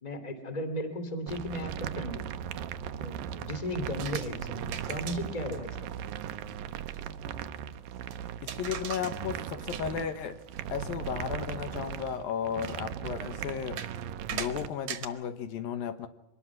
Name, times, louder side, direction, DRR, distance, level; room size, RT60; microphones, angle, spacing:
voice 1, 0.0-2.3 2.7-5.9, left 1 dB, 10° left, 8 dB, 2.2 m, -36 dB
sound 1, 1.3-14.7, right 9 dB, 75° right, 2.4 m, -38 dB
sound 2, 4.0-4.3 4.7-5.2 5.5-5.6 5.9-6.0 6.2-6.5 6.9-7.1 8.1-8.2 8.5-9.2 9.5-9.9 10.4-10.6 11.0-11.1 11.5-11.6 12.1-12.2 12.6-12.8 13.8-13.9 14.3-15.1, right 9 dB, 55° right, 2.5 m, -39 dB
voice 2, 8.4-10.4 10.7-13.8 14.3-16.1, left 8 dB, 75° left, 9 dB, 2.8 m, -34 dB
24.5 x 20.0 x 6.0 m, 0.86 s
omnidirectional pair, 4.4 m